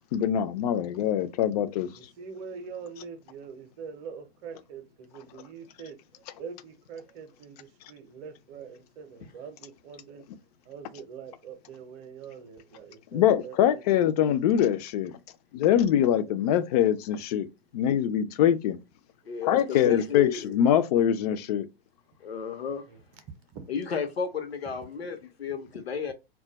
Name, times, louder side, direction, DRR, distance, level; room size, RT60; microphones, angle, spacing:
voice 1, 0.1-1.9 13.1-15.2 15.5-17.5 17.7-18.8 19.5-21.7, left 10 dB, 40° left, 0.4 m, -23 dB
voice 2, 1.9-10.2 10.7-13.9 22.6-23.2 23.5-23.7 25.5-25.7, right 6 dB, 30° right, 0.6 m, -44 dB
voice 3, 19.2-20.5 22.2-22.8 23.7-26.1, left 7 dB, 85° left, 0.8 m, -32 dB
2.3 x 2.1 x 3.9 m
hypercardioid pair, 125°, 30 cm